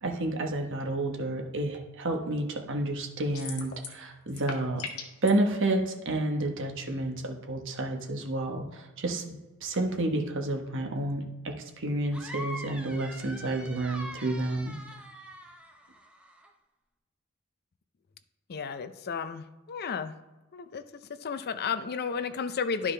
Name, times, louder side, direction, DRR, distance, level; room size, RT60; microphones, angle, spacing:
voice 1, 0.0-4.8 5.2-14.8, right 2 dB, 60° right, 3 dB, 1.2 m, -30 dB
sound 1, 3.3-4.0 4.3-5.3, left 5 dB, 90° left, 1.3 m, -38 dB
sound 2, 12.1-16.5, equal, 5° right, 0.8 m, -43 dB
voice 2, 18.5-20.1 20.5-20.8 21.2-22.9, left 6 dB, 50° left, 11 dB, 0.5 m, -33 dB
11.5 x 5.0 x 3.3 m, 1.1 s
head